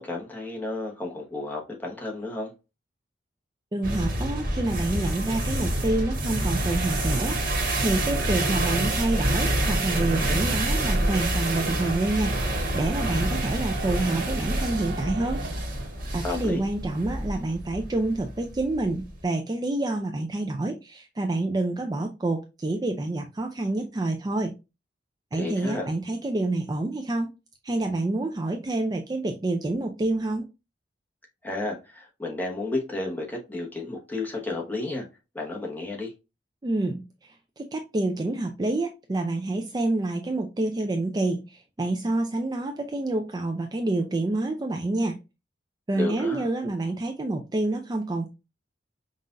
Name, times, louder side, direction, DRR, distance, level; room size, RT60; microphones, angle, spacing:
voice 1, 0.0-2.5 16.2-16.7 25.3-25.9 31.4-35.1 35.3-36.1 45.9-46.5, left 2 dB, 10° left, 1.1 m, -32 dB
voice 2, 3.7-15.4 16.1-24.5 25.3-27.3 27.6-30.5 36.6-45.2 45.9-48.3, right 2 dB, 20° right, 0.4 m, -28 dB
sound 1, 3.8-19.2, right 1 dB, 55° right, 1.3 m, -27 dB
sound 2, 6.3-18.1, right 3 dB, 70° right, 0.6 m, -37 dB
5.6 x 2.5 x 2.5 m
head